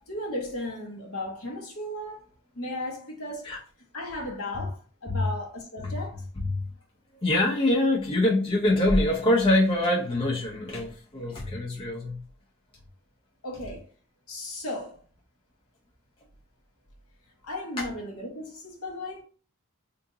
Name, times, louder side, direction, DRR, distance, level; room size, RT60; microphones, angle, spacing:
voice 1, 0.1-2.2 2.5-3.5 3.9-6.1 13.4-13.9 14.3-15.0 17.4-19.2, left 1 dB, 70° left, 1.3 m, -35 dB
voice 2, 6.4-6.7 7.1-12.2 17.8-17.9, left 1 dB, 25° left, 0.6 m, -24 dB
3.7 x 2.6 x 2.6 m
head